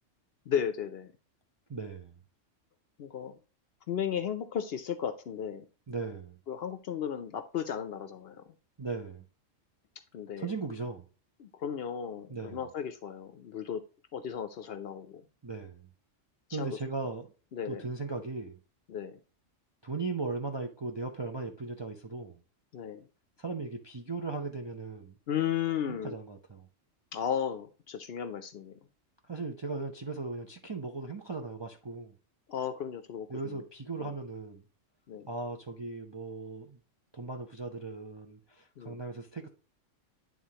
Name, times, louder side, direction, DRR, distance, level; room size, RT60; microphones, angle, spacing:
voice 1, 0.5-1.1 3.0-3.4 3.9-5.6 6.5-8.4 10.1-10.5 11.4-13.8 14.1-15.2 16.5-16.8 17.5-17.8 18.9-19.2 22.7-23.0 25.3-26.1 27.1-28.7 32.5-33.6 34.0-34.1 35.1-35.3 38.8-39.0, left 8 dB, 60° left, 0.7 m, -35 dB
voice 2, 1.7-2.1 5.9-6.4 8.8-9.2 10.4-11.1 12.3-12.7 15.4-15.9 16.5-17.3 17.6-18.6 19.8-22.4 23.4-25.2 25.9-26.7 29.3-32.1 33.3-34.6 35.3-36.8 37.1-39.5, right 3 dB, 35° right, 0.4 m, -38 dB
9.4 x 3.6 x 2.8 m
omnidirectional pair, 1.3 m